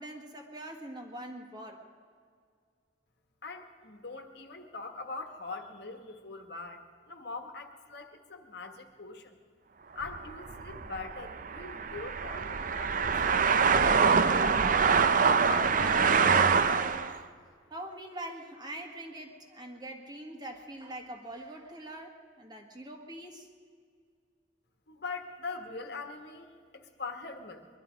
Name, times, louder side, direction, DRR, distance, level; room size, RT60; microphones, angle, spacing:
voice 1, 0.0-1.9 17.7-23.5, right 1 dB, 20° right, 2 dB, 1.6 m, -43 dB
voice 2, 3.4-9.4 9.9-14.5 15.4-17.1 24.9-27.8, left 3 dB, 60° left, 5 dB, 1.4 m, -42 dB
sound 1, 10.0-17.2, right 5 dB, 45° right, 0.6 m, -25 dB
22.0 x 12.0 x 5.1 m, 2.1 s
head